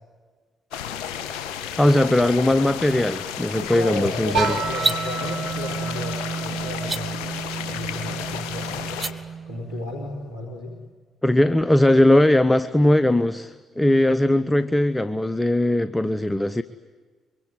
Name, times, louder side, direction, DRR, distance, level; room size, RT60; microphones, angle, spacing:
sound 1, 0.7-9.1, left 9 dB, 65° left, 1.9 m, -33 dB
voice 1, 1.8-4.6 11.2-16.6, left 1 dB, 15° left, 13 dB, 1.0 m, -19 dB
voice 2, 3.5-7.2 7.7-9.0 9.5-10.7, left 1 dB, 85° right, -3 dB, 3.7 m, -33 dB
sound 2, 4.3-10.1, right 5 dB, 65° right, 2.1 m, -31 dB
sound 3, 4.7-5.0 6.8-7.0 8.8-9.1, right 3 dB, 25° right, 1.5 m, -25 dB
25.0 x 23.5 x 9.6 m, 1.4 s
figure-of-eight pair, 40°, 0 cm